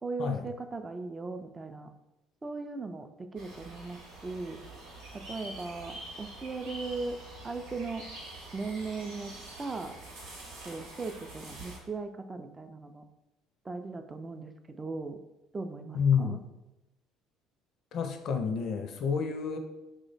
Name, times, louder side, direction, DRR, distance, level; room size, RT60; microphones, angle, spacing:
voice 1, 0.0-1.9 2.4-4.6 5.1-7.2 7.4-8.1 8.5-9.3 9.6-10.0 10.6-13.0 13.6-15.2 15.5-16.4, right 3 dB, 25° right, 7 dB, 0.3 m, -38 dB
sound 1, 3.4-11.8, right 2 dB, 80° right, 0.9 m, -46 dB
voice 2, 15.9-16.5 17.9-19.6, left 6 dB, 60° left, 7 dB, 0.4 m, -29 dB
3.0 x 2.1 x 3.9 m, 0.97 s
hypercardioid pair, 60°, 0 cm